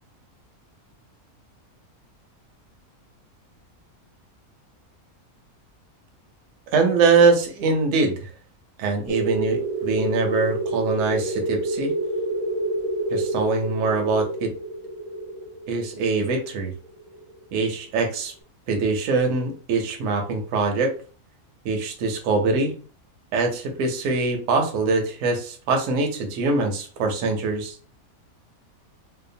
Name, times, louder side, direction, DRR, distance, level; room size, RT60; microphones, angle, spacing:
voice 1, 6.7-8.3 8.8-11.9 13.1-14.5 15.7-16.7 17.5-18.3 18.7-20.9 21.6-22.7 23.3-27.8, right 3 dB, 70° right, 3 dB, 0.9 m, -23 dB
sound 1, 9.1-17.4, right 2 dB, 35° left, 0.5 m, -29 dB
2.8 x 2.1 x 2.6 m, 0.39 s
omnidirectional pair, 1.6 m